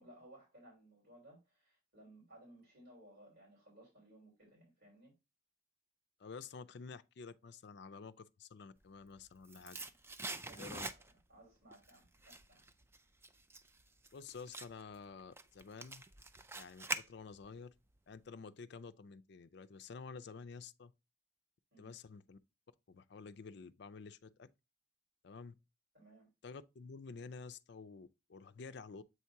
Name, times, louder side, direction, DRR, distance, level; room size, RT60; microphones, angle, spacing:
voice 1, 0.0-5.1 10.3-12.6 21.7-21.9 25.9-26.3, right 1 dB, 55° right, 3.1 m, -60 dB
voice 2, 6.2-9.8 10.6-10.9 14.1-16.0 16.5-17.7 18.1-20.9 21.8-22.4 22.9-24.5 25.2-25.5 26.4-29.0, left 5 dB, 55° left, 0.4 m, -50 dB
sound 1, 9.0-11.4 11.7-17.6 17.9-18.0, right 3 dB, 10° right, 0.3 m, -45 dB
7.8 x 2.8 x 4.6 m
head